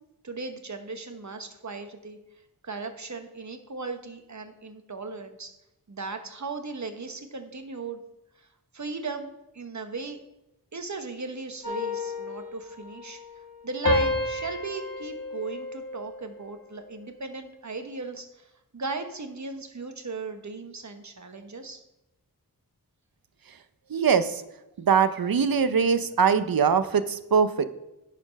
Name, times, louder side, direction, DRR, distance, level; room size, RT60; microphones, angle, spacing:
voice 1, 0.2-2.2 2.6-5.5 5.9-8.0 8.7-10.2 10.7-13.2 13.6-21.8, right 3 dB, 50° right, 7 dB, 1.1 m, -37 dB
sound 1, 11.6-13.5 13.8-16.4 16.9-17.2, left 2 dB, 65° left, 1.6 m, -31 dB
voice 2, 23.9-24.4 24.8-27.7, right 6 dB, 70° right, 12 dB, 0.7 m, -22 dB
11.0 x 4.3 x 5.2 m, 0.94 s
wide cardioid pair, 60°, 37 cm